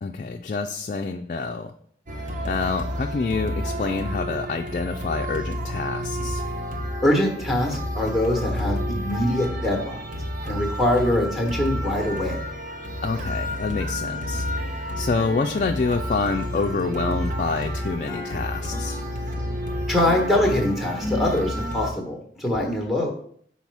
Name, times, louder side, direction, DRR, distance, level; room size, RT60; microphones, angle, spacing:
voice 1, 0.0-1.7 2.4-6.4 13.0-14.5 15.0-19.0, left 4 dB, 45° left, 4 dB, 0.3 m, -27 dB
sound 1, 2.1-21.9, equal, 45° right, 0.8 m, -30 dB
voice 2, 7.0-10.0 10.5-12.4 19.9-23.1, left 1 dB, ahead, 1 dB, 1.2 m, -23 dB
sound 2, 13.8-14.9 15.2-21.8, left 1 dB, 20° left, 0.8 m, -38 dB
5.6 x 4.2 x 4.7 m, 0.63 s
head